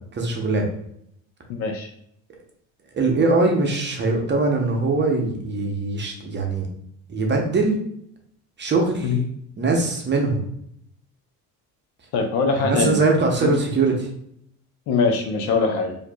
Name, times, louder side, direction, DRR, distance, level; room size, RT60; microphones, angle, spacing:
voice 1, 0.1-0.7 2.9-6.7 7.1-7.8 8.6-9.1 9.6-10.4 12.6-14.1, right 3 dB, 30° right, 1 dB, 0.8 m, -21 dB
voice 2, 1.5-1.9 9.0-9.2 12.1-13.0 13.4-13.5 14.9-16.0, left 4 dB, 75° left, 5 dB, 0.8 m, -22 dB
4.5 x 2.7 x 2.2 m, 0.70 s
cardioid pair, 110°, 38 cm